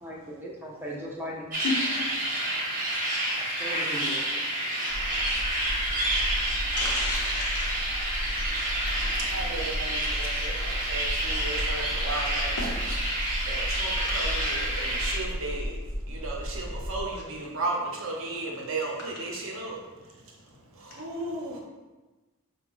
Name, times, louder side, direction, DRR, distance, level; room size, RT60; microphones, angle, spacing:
voice 1, 0.0-1.5 3.6-4.2, equal, 10° right, -4 dB, 0.4 m, -37 dB
sound 1, 1.5-15.2, right 1 dB, 40° right, 0.9 m, -29 dB
sound 2, 4.9-17.0, equal, 40° left, 0.6 m, -34 dB
voice 2, 6.7-7.8 8.2-8.4 12.6-12.7 13.0-13.3 17.1-17.2, left 3 dB, 85° left, -4 dB, 0.8 m, -33 dB
voice 3, 9.3-12.8 13.1-15.8 16.1-19.8 20.7-21.6, right 2 dB, 65° right, 0 dB, 0.7 m, -35 dB
4.5 x 2.3 x 2.9 m, 1.2 s
head